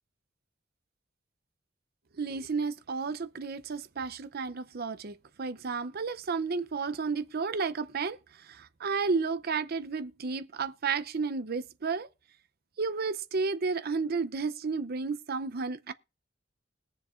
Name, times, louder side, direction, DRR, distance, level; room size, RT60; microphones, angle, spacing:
voice 1, 2.2-8.2 8.5-12.1 12.8-15.9, right 4 dB, 50° right, 0.6 m, -32 dB
20.5 x 7.1 x 2.5 m
head